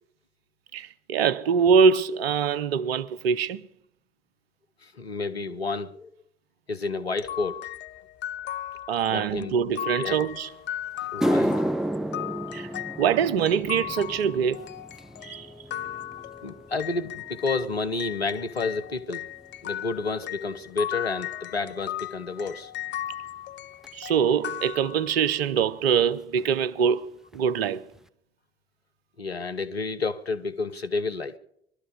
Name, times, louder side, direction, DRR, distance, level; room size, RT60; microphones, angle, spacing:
voice 1, 0.7-3.7 8.9-10.5 12.5-12.7 13.0-14.7 15.2-15.5 23.9-27.8, right 7 dB, 75° right, 0.7 m, -24 dB
voice 2, 4.8-6.1 6.7-7.6 9.1-9.5 10.0-10.2 11.1-11.6 16.4-19.3 19.6-22.7 29.2-31.4, left 3 dB, 90° left, 0.7 m, -30 dB
sound 1, 7.2-17.7 18.0-25.4, left 12 dB, 40° left, 0.5 m, -37 dB
sound 2, 10.5-10.6 11.0-19.5 19.8-20.2 21.0-21.1 23.8-23.9 25.6-25.7 25.9-26.1 26.4-26.9 27.3-27.4 27.9-28.0, equal, ahead, 0.7 m, -32 dB
21.0 x 12.5 x 5.0 m
figure-of-eight pair, 55°, 31 cm